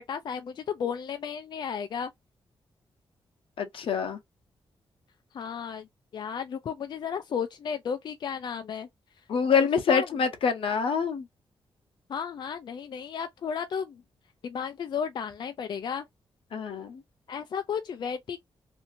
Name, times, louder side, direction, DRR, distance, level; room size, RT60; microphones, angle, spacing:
voice 1, 0.1-2.1 5.3-5.9 6.1-8.9 9.9-10.1 12.1-14.0 14.4-16.0 17.3-18.4, left 7 dB, 55° left, 0.3 m, -33 dB
voice 2, 3.6-4.2 9.3-11.3 16.5-17.0, left 6 dB, 75° left, 0.7 m, -26 dB
2.7 x 2.6 x 2.6 m
wide cardioid pair, 135°, 9 cm